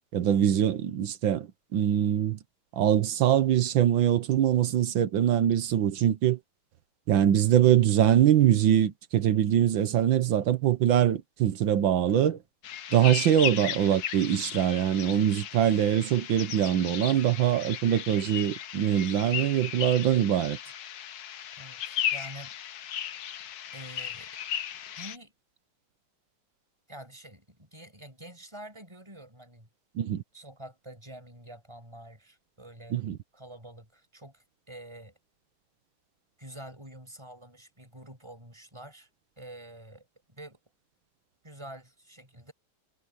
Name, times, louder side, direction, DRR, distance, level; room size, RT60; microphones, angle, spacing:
voice 1, 0.1-2.4 2.8-6.4 7.1-12.4 12.9-20.6 30.0-30.2 32.9-33.2, right 10 dB, 65° right, 1.6 m, -23 dB
sound 1, 12.6-25.2, left 10 dB, 60° left, 1.1 m, -36 dB
voice 2, 21.6-22.5 23.7-24.3 25.0-25.3 26.9-29.7 30.3-33.0 33.3-35.1 36.4-39.1 39.4-40.6 41.4-42.5, right 1 dB, 10° right, 7.2 m, -47 dB
omnidirectional pair, 2.4 m